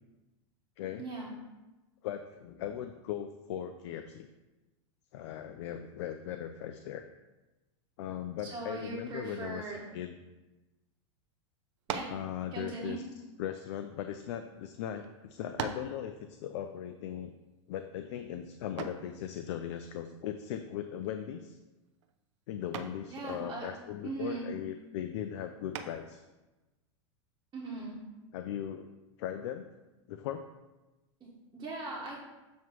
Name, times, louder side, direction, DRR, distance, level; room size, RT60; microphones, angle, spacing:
voice 1, 1.0-1.3 8.4-9.8 11.9-12.1 12.5-13.0 23.1-23.7 24.0-24.5 27.5-28.0 31.2-32.2, right 3 dB, 20° right, -6 dB, 1.5 m, -39 dB
voice 2, 2.0-4.3 5.1-7.0 8.0-10.2 12.1-13.0 13.4-17.3 17.7-21.6 22.5-26.2 28.3-28.9 29.2-29.7 30.1-30.4, left 10 dB, 65° left, 7 dB, 0.5 m, -38 dB
sound 1, 11.8-12.3 13.2-14.4 15.0-15.1 15.6-16.0 18.8-19.1 21.0-21.4 21.8-22.1 22.7-23.1 25.7-26.2, right 7 dB, 75° right, 0.7 m, -39 dB
7.3 x 3.1 x 6.1 m, 1.1 s
supercardioid pair, 130°, 16 cm